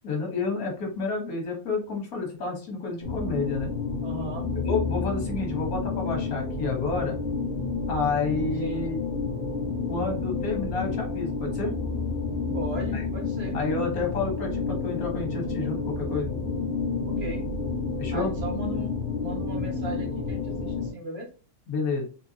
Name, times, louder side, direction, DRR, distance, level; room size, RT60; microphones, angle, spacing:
voice 1, 0.0-3.7 4.5-7.2 7.9-9.0 9.9-11.7 12.9-13.0 13.5-16.3 18.0-18.3 21.7-22.0, left 4 dB, 85° left, 1 dB, 1.8 m, -30 dB
sound 1, 3.0-20.9, left 4 dB, 40° left, 1.7 m, -30 dB
voice 2, 4.0-4.5 8.6-8.9 12.5-13.6 17.0-17.4 18.1-18.9 19.2-21.3, right 1 dB, 50° right, -1 dB, 1.4 m, -36 dB
3.9 x 3.5 x 2.8 m, 0.36 s
omnidirectional pair, 1.5 m